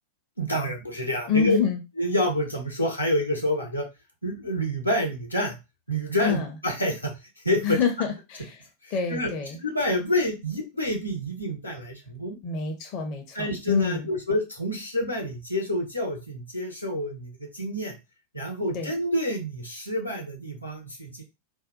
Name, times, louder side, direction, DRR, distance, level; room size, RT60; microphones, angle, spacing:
voice 1, 0.4-1.6 2.0-3.9 4.2-5.6 5.9-7.1 7.4-7.8 8.8-9.3 9.6-12.4 13.3-17.9 18.3-21.2, equal, 85° left, 0 dB, 0.9 m, -28 dB
voice 2, 1.3-1.8 6.2-6.4 7.6-8.6 8.9-9.6 12.4-14.1 18.7-18.9, left 6 dB, 40° left, 3 dB, 0.6 m, -27 dB
2.6 x 2.2 x 3.7 m, 0.26 s
figure-of-eight pair, 90°, 0 cm